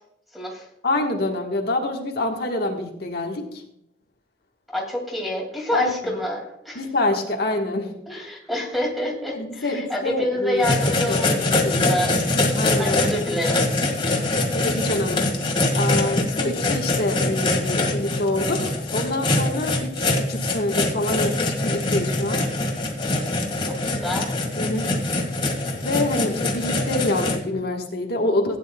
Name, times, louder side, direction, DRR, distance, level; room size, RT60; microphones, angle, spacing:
voice 1, 0.3-0.7 4.7-6.8 8.1-12.2 12.8-13.6 23.6-24.3, left 1 dB, ahead, 0 dB, 2.3 m, -28 dB
voice 2, 0.8-3.6 5.7-5.9 6.7-7.9 9.3-10.7 11.1-11.8 12.6-13.2 14.5-22.4 24.6-24.9 25.8-28.6, left 2 dB, 60° left, 1 dB, 1.3 m, -26 dB
sound 1, 10.6-27.3, left 2 dB, 30° left, 1.8 m, -23 dB
16.5 x 9.4 x 2.3 m, 0.75 s
head